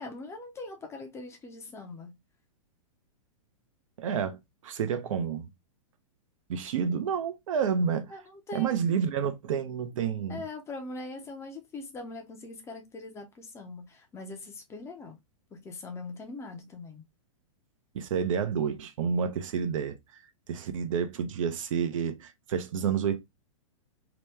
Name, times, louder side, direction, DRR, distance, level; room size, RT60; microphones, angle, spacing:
voice 1, 0.0-2.1 8.1-8.8 10.3-15.2 15.5-17.0, left 2 dB, 15° left, 0.6 m, -42 dB
voice 2, 4.0-5.5 6.5-8.1 8.5-10.4 17.9-20.0 20.5-23.2, right 7 dB, 65° right, 0.7 m, -29 dB
2.9 x 2.1 x 3.3 m
hypercardioid pair, 135°, 18 cm